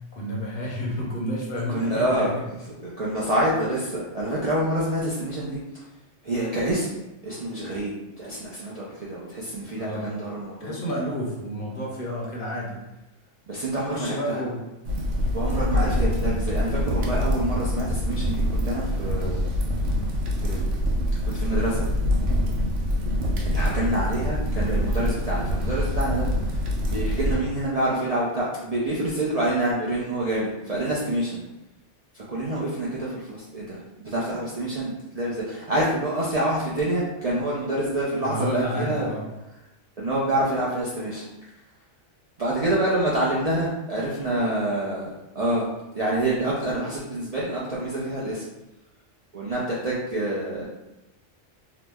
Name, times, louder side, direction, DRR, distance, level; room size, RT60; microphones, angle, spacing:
voice 1, 0.1-2.3 9.8-10.1 10.6-12.8 13.9-14.6 38.2-39.3, equal, 55° left, -3 dB, 0.7 m, -30 dB
voice 2, 1.7-2.3 2.8-5.6 6.2-6.9 7.2-10.8 13.5-14.4 15.3-19.5 20.4-20.6 21.2-21.8 23.4-31.4 32.1-39.1 40.0-41.2 42.4-48.4 49.3-50.7, right 1 dB, 50° right, -6 dB, 0.4 m, -27 dB
sound 1, 14.9-27.4, equal, 80° right, 0.9 m, -25 dB
2.9 x 2.0 x 3.4 m, 0.96 s
omnidirectional pair, 1.2 m